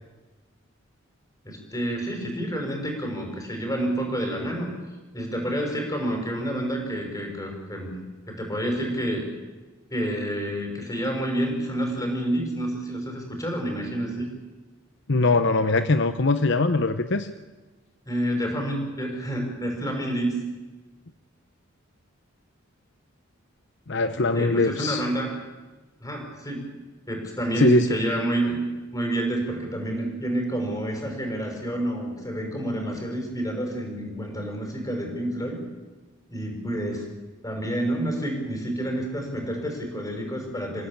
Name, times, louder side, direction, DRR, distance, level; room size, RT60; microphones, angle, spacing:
voice 1, 1.4-4.7 5.1-8.0 8.3-9.2 9.9-14.3 18.1-20.3 24.3-25.4 26.0-26.7 27.1-28.6 28.9-35.6 36.3-37.1 37.4-40.9, right 1 dB, 15° left, 2 dB, 5.6 m, -28 dB
voice 2, 15.1-17.3 23.9-25.0 27.6-27.9, left 3 dB, 60° left, 10 dB, 0.9 m, -21 dB
28.0 x 16.0 x 8.8 m, 1.2 s
head